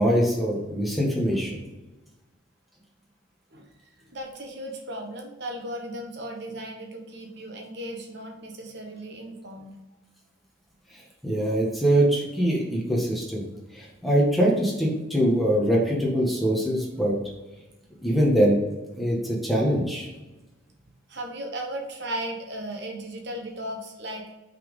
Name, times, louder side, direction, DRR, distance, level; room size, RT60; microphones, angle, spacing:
voice 1, 0.0-1.6 10.9-13.4 13.7-17.1 18.0-18.6 19.0-20.1, equal, ahead, -4 dB, 1.6 m, -23 dB
voice 2, 3.5-9.8 21.1-24.3, right 1 dB, 55° right, 2 dB, 1.2 m, -36 dB
6.0 x 5.8 x 5.4 m, 1.1 s
head